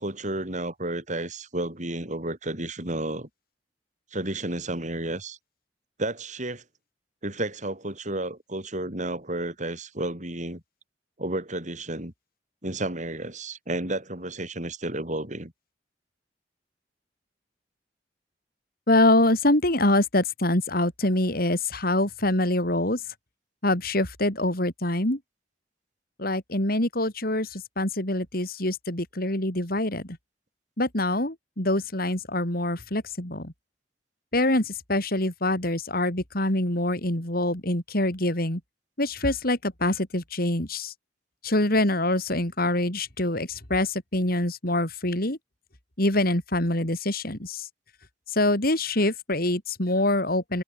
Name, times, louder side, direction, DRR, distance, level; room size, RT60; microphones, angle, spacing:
voice 1, 0.0-3.3 4.1-5.4 6.0-6.6 7.2-10.6 11.2-12.1 12.6-15.5, right 1 dB, 45° right, 5.6 m, -32 dB
voice 2, 18.9-23.0 23.6-25.2 26.2-30.2 30.8-33.5 34.3-38.6 39.0-40.9 41.4-45.4 46.0-47.7 48.3-50.6, left 1 dB, 55° left, 5.6 m, -25 dB
head